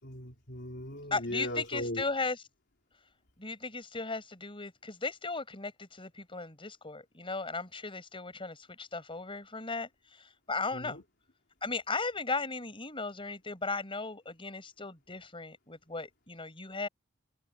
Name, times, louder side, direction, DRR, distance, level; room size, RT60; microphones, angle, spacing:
voice 1, 0.0-2.0 10.7-11.0, left 1 dB, 60° left, 3.8 m, -38 dB
voice 2, 1.1-2.4 3.4-11.0 11.6-16.9, left 3 dB, 30° left, 5.8 m, -36 dB
head